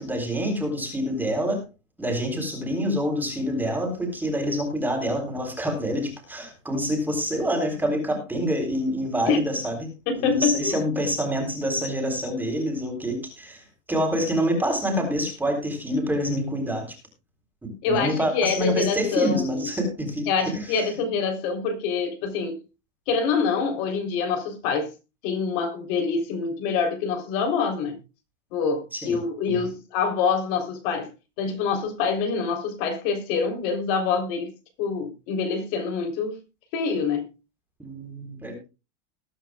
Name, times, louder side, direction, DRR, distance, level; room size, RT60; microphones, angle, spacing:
voice 1, 0.0-1.6 2.0-9.9 10.1-16.8 17.6-20.9 28.9-29.2 37.8-38.6, equal, 5° right, 3.9 m, -27 dB
voice 2, 10.1-10.8 17.8-19.7 20.3-22.6 23.1-24.9 25.2-28.0 28.5-31.1 31.4-34.5 34.8-36.4 36.7-37.2, left 5 dB, 45° left, 3.7 m, -25 dB
20.5 x 10.0 x 2.3 m
supercardioid pair, 165°, 37 cm